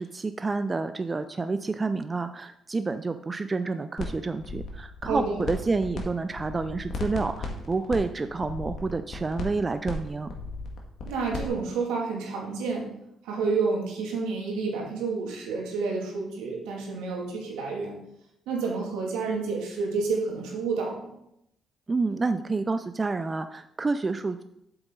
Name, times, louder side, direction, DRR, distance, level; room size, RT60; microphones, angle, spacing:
voice 1, 0.0-10.3 21.9-24.4, right 3 dB, 30° right, 10 dB, 0.5 m, -29 dB
sound 1, 4.0-4.1 4.4-6.0 6.3-11.5, left 3 dB, 65° left, 1.8 m, -36 dB
voice 2, 5.0-5.4 11.0-12.9 13.2-17.9 18.5-21.0, right 4 dB, 85° right, -1 dB, 2.1 m, -29 dB
8.0 x 6.9 x 3.8 m, 0.80 s
supercardioid pair, 60°, 0 cm